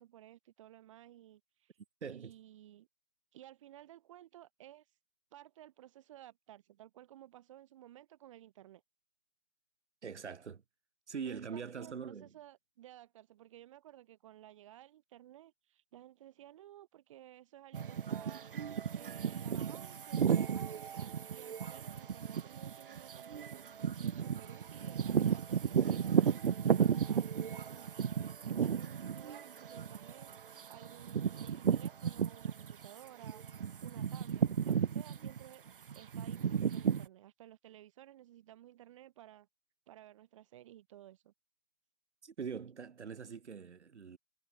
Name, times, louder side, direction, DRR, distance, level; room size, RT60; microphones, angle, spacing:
voice 1, 0.0-1.7 2.1-2.9 3.3-4.9 5.3-8.8 11.3-23.6 24.1-26.4 26.7-27.9 28.4-30.3 30.7-33.4 33.8-35.6 35.9-39.5 39.9-41.3, right 13 dB, 25° right, 2.0 m, -56 dB
voice 2, 2.0-2.3 10.0-10.6 11.1-12.3 42.2-44.2, right 6 dB, 65° right, 1.8 m, -43 dB
sound 1, 17.7-32.9 33.2-37.1, right 7 dB, 45° right, 1.2 m, -34 dB
hypercardioid pair, 160°, 38 cm